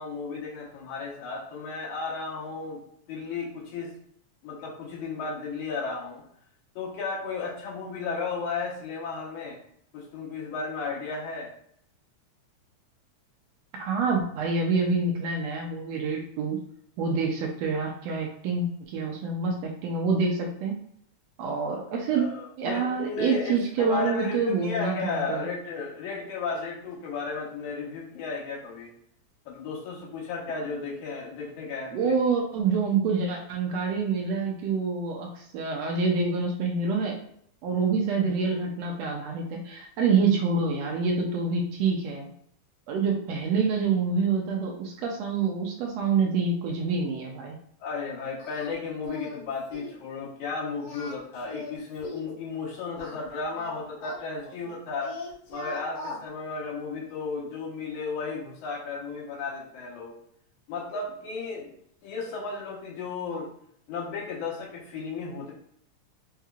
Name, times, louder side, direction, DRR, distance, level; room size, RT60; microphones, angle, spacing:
voice 1, 0.0-2.8 3.1-3.9 4.4-6.2 6.8-9.6 9.9-11.5 22.1-28.9 29.5-32.2 47.8-55.2 55.5-60.1 60.7-61.7 62.0-63.5 63.9-65.5, left 4 dB, 85° left, -3 dB, 2.5 m, -34 dB
voice 2, 13.8-16.6 17.0-20.7 21.4-22.3 22.6-25.5 31.9-37.2 37.6-42.3 42.9-47.6, right 4 dB, 75° right, 0 dB, 1.7 m, -27 dB
Singing, 48.4-48.7 49.0-49.4 49.7-50.0 50.7-52.3 53.0-54.7 55.0-56.2, left 2 dB, 65° left, 1.4 m, -40 dB
5.4 x 3.0 x 2.4 m, 0.67 s
omnidirectional pair, 3.3 m